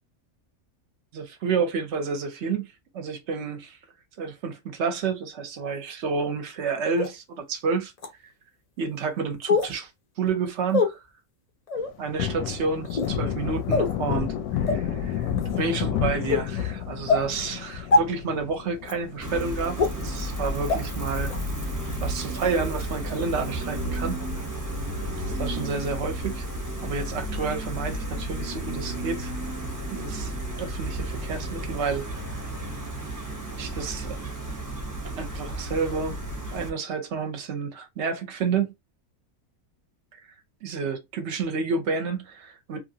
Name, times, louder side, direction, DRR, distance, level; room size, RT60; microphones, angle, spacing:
voice 1, 1.1-3.8 4.2-7.9 8.8-9.9 10.2-11.0 12.0-21.3 22.0-24.2 25.4-26.5 26.8-29.3 29.9-30.3 30.6-32.5 33.6-34.2 35.2-36.2 36.5-38.7 40.1-40.2 40.6-42.8, right 5 dB, 60° right, 0.8 m, -30 dB
sound 1, 7.0-7.1 8.0-8.1 9.5-9.7 10.7-10.9 11.7-11.9 12.8-13.1 13.7-13.9 14.7-14.8 15.4-15.6 16.3-16.4 17.1-17.2 17.9-18.0 18.8-18.9 19.8-19.9 20.7-20.8 21.3-21.4, left 4 dB, 65° left, 0.4 m, -22 dB
Thunder, 11.8-22.5 22.9-23.0 23.3-24.8 25.1-25.3 25.6-26.4 26.8-26.9 27.3-27.4 29.7-30.3, left 9 dB, 85° left, 1.1 m, -32 dB
Gull seagull, 19.2-36.7, right 1 dB, 15° right, 0.6 m, -32 dB
2.9 x 2.5 x 2.6 m
omnidirectional pair, 1.6 m